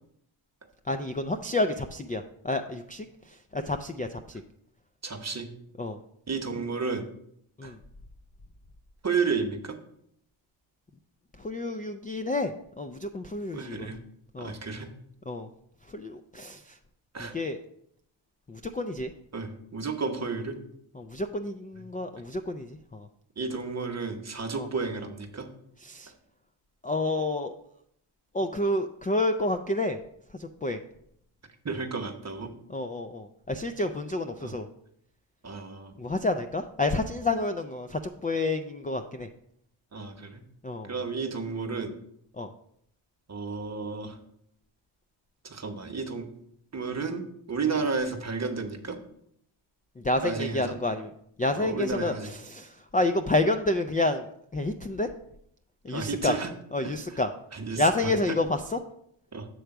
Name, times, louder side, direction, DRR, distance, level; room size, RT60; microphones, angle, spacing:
voice 1, 0.9-3.1 3.5-4.4 5.8-6.0 7.6-7.8 11.4-12.5 12.8-13.9 14.3-14.5 15.3-15.5 15.9-16.8 17.2-17.6 18.5-19.1 21.0-23.1 24.6-24.7 25.8-26.1 26.8-27.5 28.3-30.0 30.4-30.8 32.7-34.7 36.0-39.3 40.6-40.9 42.4-42.5 50.0-51.1 51.4-54.3 54.5-55.1 55.8-56.4 56.7-57.3 57.8-58.8, left 2 dB, 20° left, 6 dB, 0.4 m, -29 dB
voice 2, 5.0-5.5 6.3-7.0 7.6-7.7 9.0-9.8 13.5-14.0 14.4-14.9 17.1-17.3 19.3-20.6 21.7-21.8 23.4-25.5 31.6-32.5 34.4-34.5 35.4-35.9 39.9-40.4 40.9-41.9 43.3-44.2 45.4-46.3 46.7-49.0 50.2-50.7 51.5-52.3 55.9-56.5 56.8-57.2 57.5-58.4 59.3-59.5, right 4 dB, 35° right, 5 dB, 1.0 m, -32 dB
7.7 x 3.4 x 5.8 m, 0.72 s
cardioid pair, 55°, 49 cm